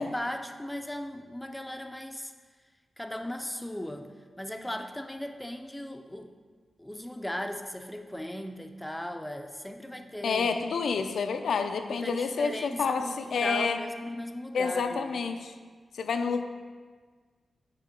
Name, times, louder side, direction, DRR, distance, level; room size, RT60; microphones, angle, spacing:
voice 1, 0.0-2.3 3.0-4.1 4.4-6.3 6.8-10.5 11.9-15.2, left 1 dB, 5° left, 6 dB, 0.3 m, -37 dB
voice 2, 10.2-13.8 14.5-15.5 16.0-16.4, left 5 dB, 90° left, 7 dB, 0.4 m, -28 dB
7.6 x 3.0 x 5.0 m, 1.5 s
wide cardioid pair, 170°, 0 cm